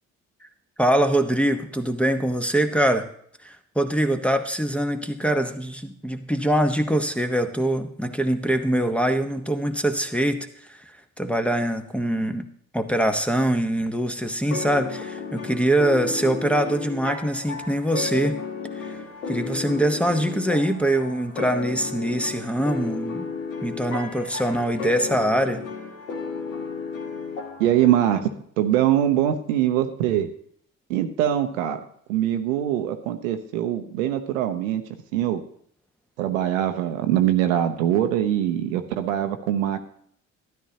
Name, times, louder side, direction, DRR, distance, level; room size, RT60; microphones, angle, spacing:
voice 1, 0.8-3.1 3.4-10.8 11.2-12.5 12.7-18.4 18.8-18.9 19.3-23.3 23.6-25.6, right 1 dB, 5° left, 7 dB, 1.0 m, -23 dB
sound 1, 14.5-28.2, left 5 dB, 85° left, 1.4 m, -33 dB
voice 2, 27.6-28.3 28.6-30.3 30.9-31.8 32.1-34.8 35.1-35.4 36.2-39.8, right 11 dB, 80° right, 8 dB, 0.8 m, -22 dB
12.5 x 10.0 x 2.8 m, 0.65 s
hypercardioid pair, 50°, 39 cm